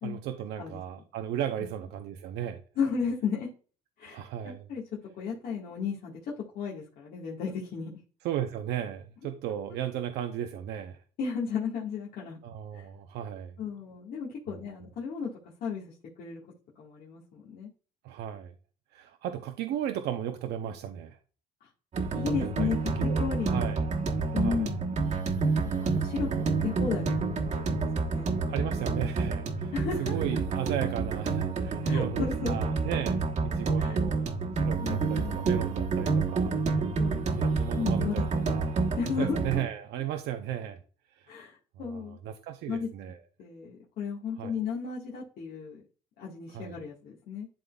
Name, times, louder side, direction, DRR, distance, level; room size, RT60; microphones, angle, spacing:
voice 1, 0.0-2.6 4.0-4.6 8.2-11.0 12.4-13.5 18.0-18.5 18.9-21.2 22.4-22.7 23.0-23.8 24.3-24.7 26.2-26.5 28.5-29.7 30.0-34.3 34.6-36.6 37.3-38.7 39.2-40.8 41.1-41.4 41.8-43.2 44.4-44.5 46.5-46.8, right 10 dB, 80° right, 6 dB, 0.7 m, -35 dB
voice 2, 2.8-3.5 4.0-4.8 5.2-7.9 11.2-12.4 12.7-12.9 13.6-15.3 15.6-16.4 16.8-17.7 21.6-21.7 22.1-23.6 24.3-24.8 25.8-26.3 26.6-27.1 27.5-28.3 29.7-30.2 31.8-32.6 33.8-34.0 34.8-35.4 37.0-37.5 37.7-38.2 39.0-39.6 41.3-42.2 42.7-42.9 43.4-45.8 46.2-47.5, left 6 dB, 65° left, -5 dB, 1.7 m, -34 dB
sound 1, 21.9-39.6, right 4 dB, 45° right, 1.3 m, -28 dB
11.5 x 3.8 x 2.3 m, 0.38 s
cardioid pair, 110°, 17 cm